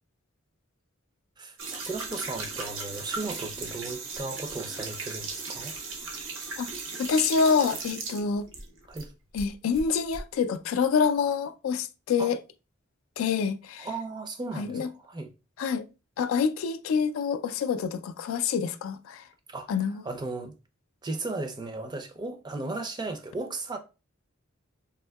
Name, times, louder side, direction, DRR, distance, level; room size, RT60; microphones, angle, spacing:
voice 1, 1.4-5.8 8.9-9.1 12.2-12.3 13.8-15.3 19.5-19.8 20.0-20.5 21.0-23.8, right 3 dB, 20° right, 0.4 m, -36 dB
sound 1, 1.6-9.1 9.4-10.2, right 4 dB, 70° right, 0.7 m, -37 dB
voice 2, 7.0-8.5 9.3-12.4 13.2-13.9 14.6-14.9 15.6-15.8 16.2-19.2 19.7-20.0, left 6 dB, 75° left, 0.3 m, -26 dB
3.5 x 2.6 x 2.2 m
head